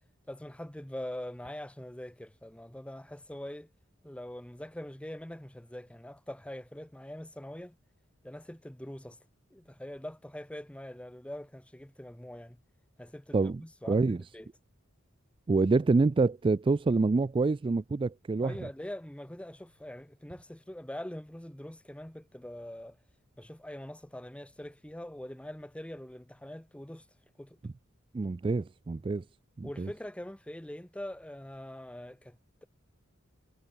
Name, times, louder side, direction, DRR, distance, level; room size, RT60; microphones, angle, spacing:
voice 1, 0.3-3.7 4.0-7.8 8.2-9.2 9.5-12.6 13.0-14.0 14.3-14.5 18.4-23.0 23.4-27.1 27.4-27.6 29.6-32.7, left 1 dB, 5° left, 0.9 m, -43 dB
voice 2, 13.9-14.2 15.5-18.5 28.1-29.2 29.6-29.9, right 3 dB, 25° right, 0.3 m, -26 dB
head